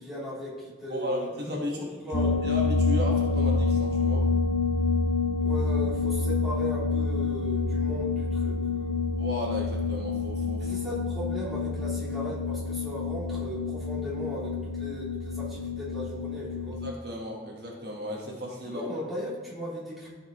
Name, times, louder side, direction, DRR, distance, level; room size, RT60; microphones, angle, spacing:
voice 1, 0.0-2.4 5.4-9.2 10.6-16.8 18.6-20.2, left 1 dB, ahead, -9 dB, 2.6 m, -37 dB
voice 2, 0.9-1.9 2.4-4.2 9.2-10.8 16.7-18.8, left 1 dB, 60° right, -1 dB, 1.4 m, -34 dB
sound 1, 2.1-16.9, left 4 dB, 55° left, 0.6 m, -28 dB
13.0 x 5.1 x 3.0 m, 1.5 s
head